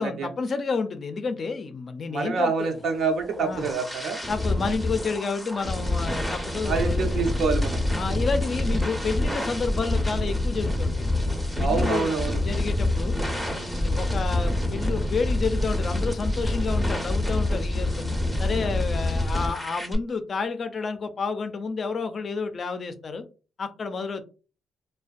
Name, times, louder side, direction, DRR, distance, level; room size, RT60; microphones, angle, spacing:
voice 1, 0.0-2.8 3.4-3.7 4.3-7.3 8.0-11.2 11.6-13.2 13.5-18.0 18.4-23.2 23.6-24.2, left 4 dB, 45° left, 8 dB, 0.4 m, -30 dB
voice 2, 2.1-4.2 6.6-7.8 11.6-12.4, right 4 dB, 65° right, 4 dB, 0.6 m, -27 dB
sound 1, 3.0-20.0, left 1 dB, 5° right, 0.6 m, -27 dB
2.5 x 2.2 x 2.4 m, 0.34 s
cardioid pair, 90°, 0 cm